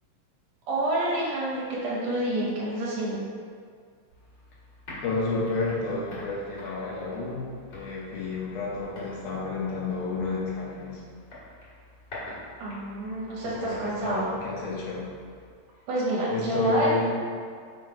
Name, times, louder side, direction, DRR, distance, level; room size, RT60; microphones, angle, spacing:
voice 1, 0.7-3.2 12.6-14.3 15.9-16.9, right 1 dB, 75° right, -6 dB, 2.5 m, -28 dB
sound 1, 4.1-15.5, left 1 dB, 45° left, 1.6 m, -46 dB
voice 2, 5.0-11.0 13.6-15.1 16.3-17.1, left 3 dB, 70° left, -5 dB, 2.3 m, -30 dB
6.1 x 3.2 x 4.7 m, 2.1 s
omnidirectional pair, 3.9 m